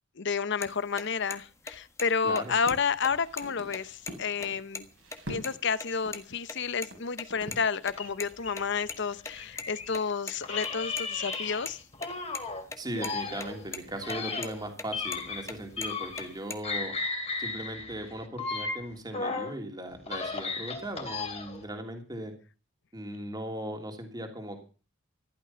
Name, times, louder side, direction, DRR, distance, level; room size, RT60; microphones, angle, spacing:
voice 1, 0.2-4.9 5.3-11.8, left 5 dB, 60° left, 0.9 m, -30 dB
sound 1, 0.6-0.7 1.0-1.1 1.3-1.4 1.7-2.1 2.4-2.5 2.7-2.8 3.0-4.1 4.4-4.5 4.7-4.9 5.1-5.5 5.8-6.2 6.5-7.6 7.8-10.3 10.6-12.4 12.7-12.8 13.0-13.5 13.7-14.2 14.4-15.5 15.8-16.6, left 4 dB, 15° left, 1.5 m, -39 dB
voice 2, 2.2-2.5 12.8-16.9 17.4-22.3 22.9-24.6, right 1 dB, 20° right, 3.0 m, -38 dB
sound 2, 2.7-4.6 4.9-5.6 6.1-6.2 6.5-6.6 6.9-7.0 7.3-7.7, equal, 70° right, 4.8 m, -43 dB
sound 3, 7.9-10.0 10.4-12.6 12.9-16.4 16.6-19.5 19.9-21.6, left 4 dB, 30° left, 3.0 m, -35 dB
15.0 x 12.0 x 5.8 m
head